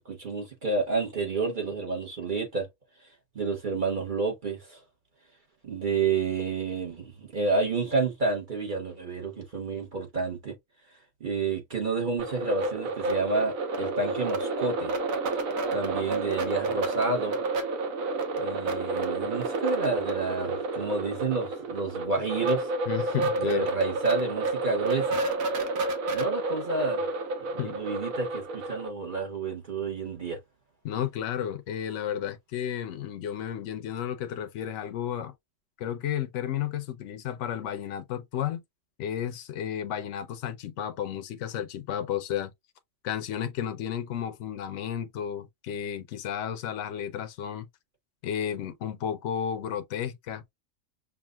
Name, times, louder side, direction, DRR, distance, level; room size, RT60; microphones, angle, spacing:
voice 1, 0.0-2.7 3.3-4.8 5.6-10.6 11.2-14.9 15.7-17.4 18.4-22.7 23.4-25.2 26.1-27.0 27.5-30.4, right 4 dB, 40° right, 1.1 m, -30 dB
sound 1, 12.2-28.9, right 3 dB, 85° right, 1.3 m, -30 dB
voice 2, 22.9-23.7 27.6-27.8 30.8-35.3 35.8-38.6 39.0-42.5 43.0-47.7 48.2-50.5, left 9 dB, 70° left, 0.9 m, -32 dB
5.9 x 2.5 x 2.2 m
omnidirectional pair, 1.4 m